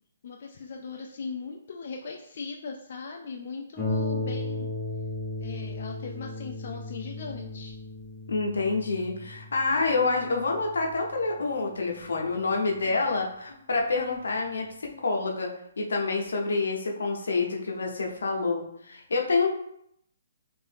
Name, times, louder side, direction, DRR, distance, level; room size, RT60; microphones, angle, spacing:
voice 1, 0.2-4.7 5.4-7.7 12.7-13.1, left 4 dB, 55° left, 1 dB, 0.3 m, -39 dB
Harp, 3.8-12.9 13.8-13.9 14.4-14.5, left 2 dB, 5° left, 1.1 m, -36 dB
voice 2, 8.3-19.5, left 3 dB, 85° left, 0 dB, 0.7 m, -27 dB
2.7 x 2.5 x 3.4 m, 0.73 s
hypercardioid pair, 160°, 0 cm